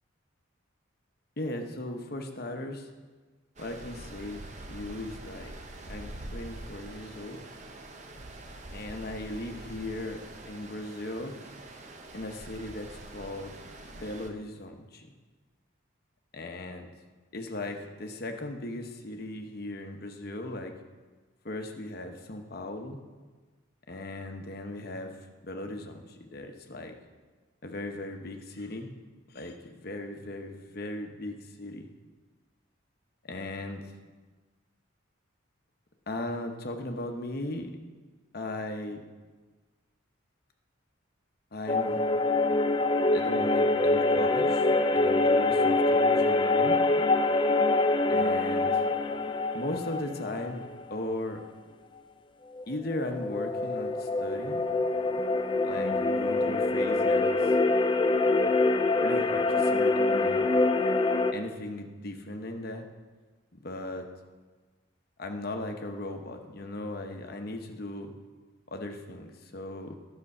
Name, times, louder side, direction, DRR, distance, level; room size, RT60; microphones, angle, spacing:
voice 1, 1.4-2.9 3.6-5.5 5.9-7.4 8.7-10.2 10.4-11.3 12.1-13.5 13.8-15.1 16.3-16.9 17.3-20.7 21.4-23.0 23.9-25.1 25.4-26.9 27.6-28.9 29.3-31.9 33.2-33.8 36.1-37.7 38.3-39.0 41.5-42.0 43.1-46.8 48.1-48.7 49.5-51.4 52.7-54.6 55.6-57.5 59.0-60.4 61.3-62.8 63.6-64.1 65.2-68.1 68.7-70.0, left 1 dB, 50° left, 4 dB, 0.9 m, -37 dB
Stream, 3.6-14.3, right 1 dB, 35° right, 0.7 m, -45 dB
sound 1, 41.7-51.0 52.6-61.3, left 2 dB, 25° left, 0.3 m, -25 dB
11.0 x 6.8 x 5.4 m, 1.3 s
head